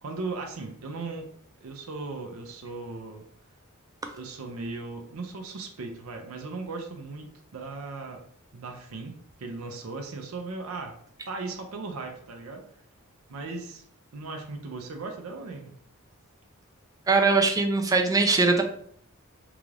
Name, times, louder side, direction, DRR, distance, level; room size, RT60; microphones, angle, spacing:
voice 1, 0.0-1.3 1.6-3.3 4.1-8.2 8.5-9.1 9.4-11.0 11.3-12.7 13.3-13.8 14.1-15.7, right 3 dB, 85° right, 3 dB, 0.5 m, -37 dB
voice 2, 17.1-18.6, right 3 dB, 15° right, 4 dB, 0.4 m, -21 dB
3.8 x 2.4 x 3.2 m, 0.63 s
head